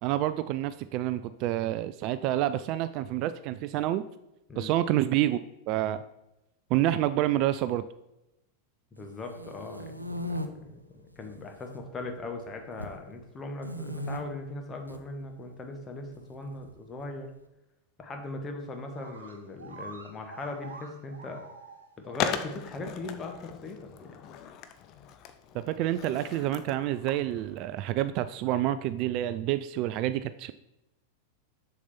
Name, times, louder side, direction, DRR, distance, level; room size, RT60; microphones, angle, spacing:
voice 1, 0.0-4.0 4.6-5.4 5.7-6.0 6.7-7.8 25.5-30.5, right 13 dB, 40° right, 13 dB, 0.3 m, -28 dB
voice 2, 8.9-17.3 18.0-21.4 22.0-24.1, left 2 dB, 20° left, 4 dB, 1.4 m, -39 dB
sound 1, 9.1-10.5 11.1-11.7 12.0-13.0 13.6-14.2 14.7-15.0 16.1-17.1, left 1 dB, 85° right, 0.6 m, -37 dB
sound 2, 18.6-18.7 18.9-22.2 22.6-22.7 23.4-23.5, right 3 dB, 70° right, 1.1 m, -47 dB
Skateboard, 22.1-27.7, left 8 dB, 40° left, 0.7 m, -38 dB
7.3 x 6.6 x 4.3 m, 0.91 s
figure-of-eight pair, 90°, 0 cm